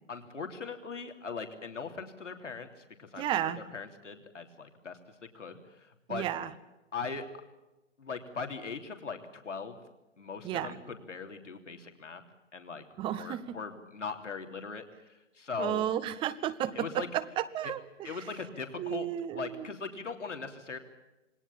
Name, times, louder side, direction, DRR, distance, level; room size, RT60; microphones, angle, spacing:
voice 1, 0.1-5.0 5.3-6.3 6.9-7.3 8.0-9.8 10.2-12.2 12.5-12.8 13.1-15.9 16.8-17.1 18.0-19.1 19.3-20.8, left 5 dB, 75° left, 5 dB, 3.4 m, -40 dB
voice 2, 3.2-3.6 6.1-6.5 10.4-10.8 13.0-13.6 15.6-18.3 18.8-19.7, right 11 dB, 15° right, 15 dB, 1.0 m, -33 dB
28.0 x 21.0 x 7.4 m, 1.0 s
figure-of-eight pair, 130°, 37 cm